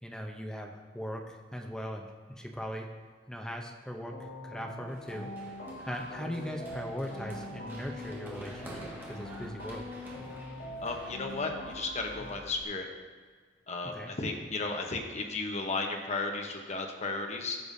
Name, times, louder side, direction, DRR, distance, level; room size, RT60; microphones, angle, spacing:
voice 1, 0.0-2.9 3.3-4.2 4.4-5.3 5.9-9.8 13.9-14.1, equal, 5° left, 2 dB, 0.7 m, -39 dB
sound 1, 4.1-12.3, left 1 dB, 70° left, 2.3 m, -43 dB
Run, 4.9-12.6, right 1 dB, 10° right, 1.6 m, -49 dB
voice 2, 10.8-12.9 13.7-17.6, left 3 dB, 40° left, 2 dB, 0.9 m, -34 dB
14.5 x 6.8 x 2.7 m, 1.5 s
head